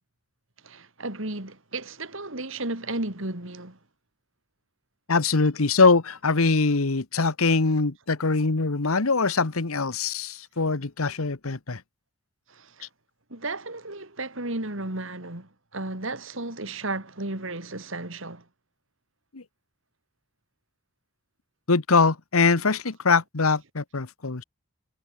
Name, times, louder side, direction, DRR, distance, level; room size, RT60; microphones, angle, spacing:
voice 1, 0.6-3.8 12.5-12.9 13.3-18.4, right 2 dB, 65° right, 3.5 m, -34 dB
voice 2, 5.1-11.8 19.3-19.4 21.7-24.4, left 4 dB, 80° left, 1.2 m, -23 dB
head